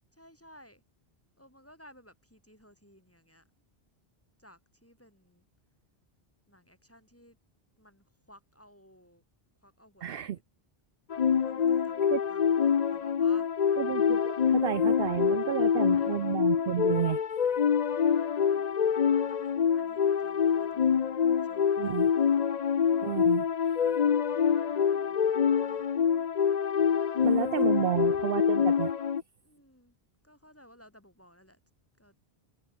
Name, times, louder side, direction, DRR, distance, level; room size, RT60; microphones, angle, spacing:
voice 1, 0.1-0.8 1.4-3.5 4.4-5.4 6.5-7.4 7.8-9.2 9.6-10.4 11.3-13.8 15.4-16.1 18.0-18.7 19.1-22.4 24.9-25.9 27.5-27.9 29.4-30.0 30.2-31.6 32.0-32.2, equal, 15° left, 8.0 m, -58 dB
voice 2, 10.0-10.4 12.1-12.2 13.8-17.2 21.8-22.1 23.0-23.5 27.2-28.9, right 10 dB, 65° right, 0.8 m, -31 dB
sound 1, 11.1-29.2, left 7 dB, 45° left, 0.7 m, -26 dB
open air
omnidirectional pair, 1.0 m